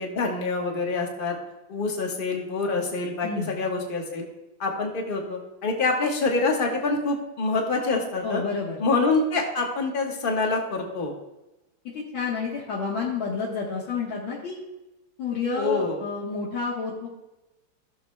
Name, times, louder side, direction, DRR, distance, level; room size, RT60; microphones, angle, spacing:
voice 1, 0.0-1.4 1.7-4.3 4.6-8.4 8.8-11.1 15.6-16.0, left 3 dB, 30° left, 1 dB, 1.2 m, -26 dB
voice 2, 8.2-8.8 12.1-14.6 15.2-17.1, left 5 dB, 80° left, -5 dB, 2.1 m, -29 dB
15.0 x 6.6 x 2.2 m, 1.0 s
omnidirectional pair, 2.2 m